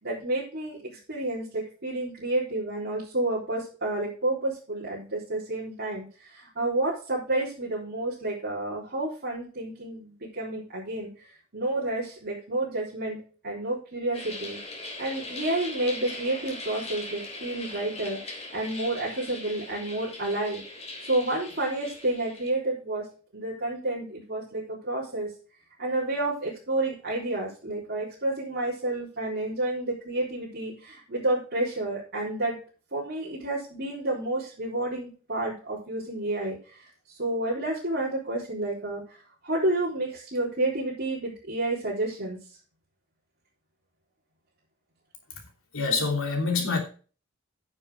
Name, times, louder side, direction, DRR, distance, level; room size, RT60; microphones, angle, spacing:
voice 1, 0.0-11.1 11.5-13.2 13.4-14.6 15.0-20.6 21.0-23.0 23.3-25.3 25.8-32.6 32.9-36.6 37.2-39.0 39.4-42.4, right 2 dB, 50° right, 4.1 m, -30 dB
sound 1, 14.1-22.5, left 2 dB, 30° left, 3.2 m, -40 dB
voice 2, 45.7-46.8, left 4 dB, 75° left, 3.1 m, -26 dB
9.6 x 7.1 x 5.1 m
head